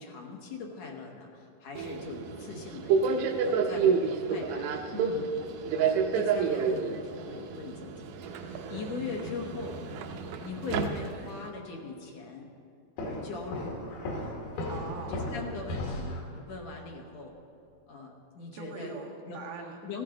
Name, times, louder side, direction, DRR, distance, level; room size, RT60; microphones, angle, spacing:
voice 1, 0.0-4.7 5.7-9.8 10.4-12.5 13.0-13.9 15.1-17.3 17.9-18.9 19.3-19.4 19.8-20.0, left 4 dB, 60° left, 0 dB, 2.1 m, -41 dB
Subway metro underground, 1.8-11.5, right 5 dB, 85° right, 1.6 m, -30 dB
voice 2, 4.9-5.4 14.7-15.2 18.5-20.0, right 3 dB, 65° right, -2 dB, 3.1 m, -41 dB
Walk footsteps, 13.0-16.3, left 1 dB, 90° left, 3.7 m, -36 dB
14.5 x 14.5 x 3.8 m, 2.5 s
omnidirectional pair, 4.2 m